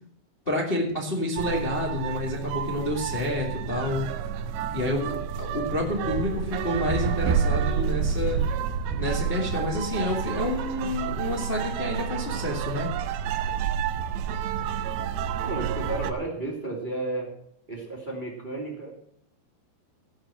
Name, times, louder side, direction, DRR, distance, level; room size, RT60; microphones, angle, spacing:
voice 1, 0.4-4.1 4.7-8.4 9.0-12.9, left 1 dB, 45° left, -2 dB, 0.6 m, -29 dB
sound 1, 1.4-16.1, right 7 dB, 80° right, 2.9 m, -29 dB
voice 2, 15.4-17.3 17.7-19.0, right 2 dB, 20° right, 0 dB, 1.4 m, -32 dB
16.5 x 6.0 x 7.5 m, 0.72 s
omnidirectional pair, 5.4 m